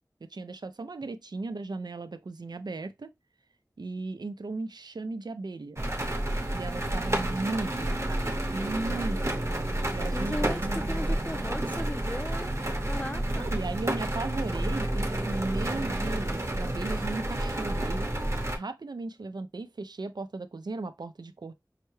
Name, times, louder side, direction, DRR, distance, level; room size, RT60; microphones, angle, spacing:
voice 1, 0.2-3.1 3.8-5.8 6.5-10.9 13.4-18.1 18.5-21.5, right 3 dB, 90° right, 0.4 m, -36 dB
sound 1, 5.8-18.6, right 1 dB, 45° right, 0.8 m, -30 dB
voice 2, 10.1-10.6 10.9-13.6, left 1 dB, 20° left, 0.6 m, -37 dB
5.6 x 2.2 x 3.0 m
wide cardioid pair, 40°, 7 cm